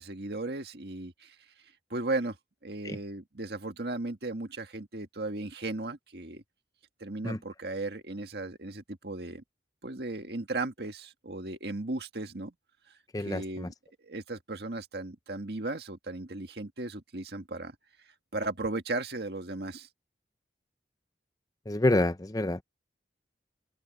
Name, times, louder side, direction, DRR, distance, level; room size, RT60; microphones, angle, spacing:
voice 1, 0.0-1.4 1.9-2.4 2.6-6.4 7.0-9.4 9.8-12.5 13.2-13.7 14.0-17.8 18.3-19.9, right 2 dB, 65° right, 1.8 m, -36 dB
voice 2, 13.1-13.7 21.7-22.6, left 1 dB, 20° left, 0.6 m, -27 dB
open air
head